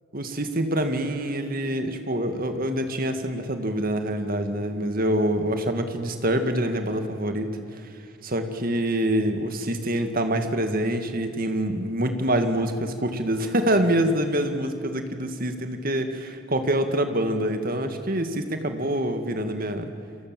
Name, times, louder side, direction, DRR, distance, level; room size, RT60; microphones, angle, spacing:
voice 1, 0.1-7.9 8.2-19.9, right 1 dB, 45° right, 7 dB, 2.1 m, -26 dB
29.5 x 23.5 x 7.8 m, 2.5 s
head